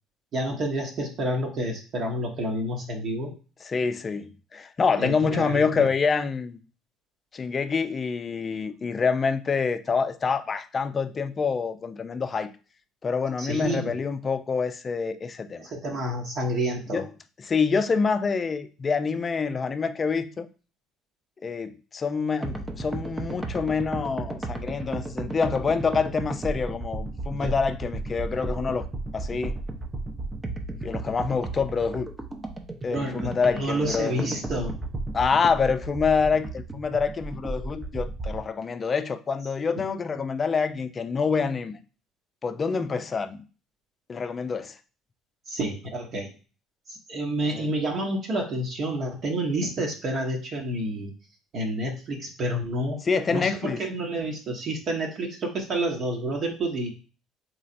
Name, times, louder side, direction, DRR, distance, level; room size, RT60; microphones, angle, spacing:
voice 1, 0.3-3.3 5.0-5.9 13.4-14.0 15.6-17.0 27.4-27.5 32.9-34.7 45.5-46.3 46.9-51.1 51.5-53.0 53.3-56.9, right 1 dB, 50° right, 0.9 m, -29 dB
voice 2, 3.7-6.6 7.3-12.5 13.0-15.6 16.9-17.0 17.4-20.5 21.4-28.9 29.1-29.6 30.8-32.1 32.8-34.3 35.1-41.8 42.4-43.4 44.1-44.7 47.5-47.7 53.0-53.8, left 5 dB, 35° left, 0.4 m, -26 dB
sound 1, 22.4-38.4, right 2 dB, 20° right, 0.6 m, -34 dB
3.9 x 3.0 x 2.6 m
figure-of-eight pair, 55°, 0 cm